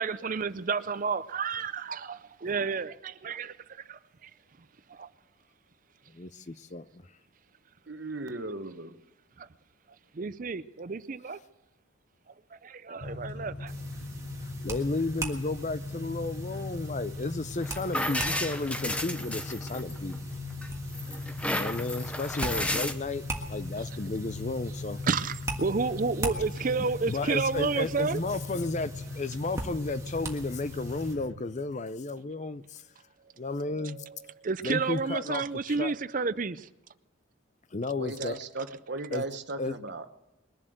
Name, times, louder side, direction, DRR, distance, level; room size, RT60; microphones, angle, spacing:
voice 1, 0.0-4.3 4.9-5.1 9.4-9.5 10.1-11.4 12.3-13.7 23.8-23.9 25.1-28.2 33.7-36.7, right 4 dB, 40° right, 0.5 m, -31 dB
voice 2, 6.1-6.9 14.6-20.2 21.6-25.0 27.1-32.8 33.4-34.0 34.6-35.9 37.7-38.4 39.1-39.2 39.6-39.7, left 3 dB, 35° left, 0.6 m, -33 dB
voice 3, 7.9-9.0 38.0-40.1, right 2 dB, 55° right, 1.0 m, -36 dB
sound 1, 13.0-31.3, left 2 dB, 55° left, 1.1 m, -39 dB
sound 2, 13.7-31.1, right 2 dB, 15° right, 1.6 m, -42 dB
sound 3, 17.6-20.2 20.6-22.9, left 1 dB, 5° left, 0.8 m, -32 dB
22.0 x 7.4 x 7.9 m
head